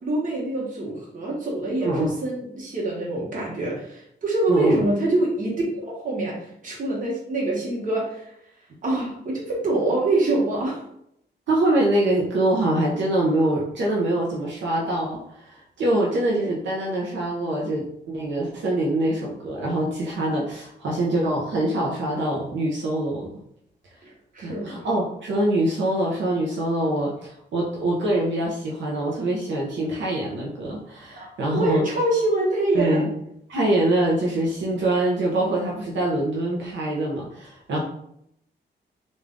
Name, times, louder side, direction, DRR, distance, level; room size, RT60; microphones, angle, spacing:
voice 1, 0.0-6.3 6.6-8.2 8.8-10.8 24.3-24.9 31.2-31.3 31.5-33.0 37.7-37.8, right 2 dB, 45° right, -4 dB, 1.2 m, -25 dB
voice 2, 4.5-4.9 11.5-23.3 24.4-31.9 32.7-33.1 33.5-37.8, right 1 dB, 90° right, -3 dB, 0.8 m, -24 dB
3.6 x 2.6 x 3.5 m, 0.74 s
wide cardioid pair, 160°, 18 cm